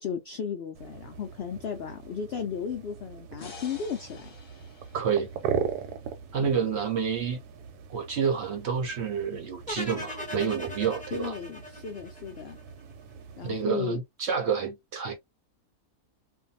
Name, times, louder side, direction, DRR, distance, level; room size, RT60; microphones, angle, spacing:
voice 1, 0.0-4.3 6.4-6.7 11.1-12.6 13.4-14.0, left 7 dB, 85° left, 0.5 m, -35 dB
sound 1, 0.7-13.6, right 7 dB, 90° right, 1.2 m, -39 dB
sound 2, 3.4-6.6, left 4 dB, 35° left, 0.9 m, -50 dB
voice 2, 4.9-5.3 6.3-7.4 7.9-11.3 13.4-15.2, right 6 dB, 60° right, 0.8 m, -29 dB
sound 3, 9.7-12.8, left 1 dB, 10° left, 0.6 m, -39 dB
2.6 x 2.2 x 2.6 m
omnidirectional pair, 1.7 m